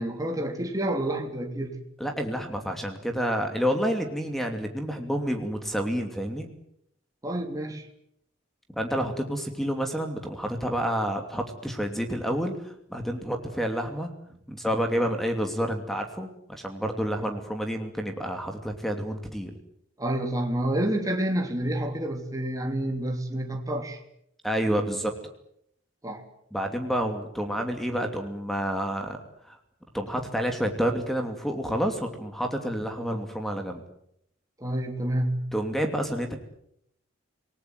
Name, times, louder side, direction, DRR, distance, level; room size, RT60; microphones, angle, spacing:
voice 1, 0.0-1.8 7.2-7.8 20.0-24.0 26.0-26.2 34.6-35.5, right 1 dB, 15° right, 3 dB, 3.2 m, -29 dB
voice 2, 2.0-6.5 8.7-14.1 14.5-19.6 24.4-25.1 26.5-29.2 29.5-29.6 29.9-33.8 35.5-36.4, equal, ahead, 5 dB, 2.7 m, -29 dB
27.5 x 19.5 x 9.3 m, 0.74 s
head